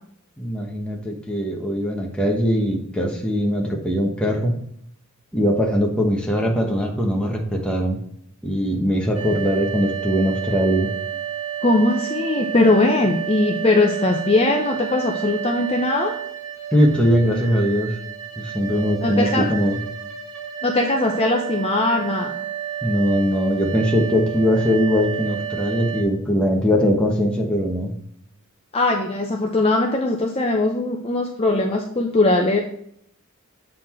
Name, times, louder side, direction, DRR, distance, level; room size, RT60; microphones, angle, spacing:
voice 1, 0.4-4.6 5.3-8.0 8.4-10.9 16.7-18.0 18.4-19.8 22.8-27.9, equal, 5° left, 0 dB, 1.1 m, -21 dB
sound 1, 9.1-26.0, right 10 dB, 65° right, 1.1 m, -31 dB
voice 2, 11.6-16.1 19.0-19.4 20.6-22.3 28.7-32.6, left 2 dB, 30° left, 2 dB, 0.6 m, -20 dB
7.5 x 4.2 x 4.4 m, 0.68 s
head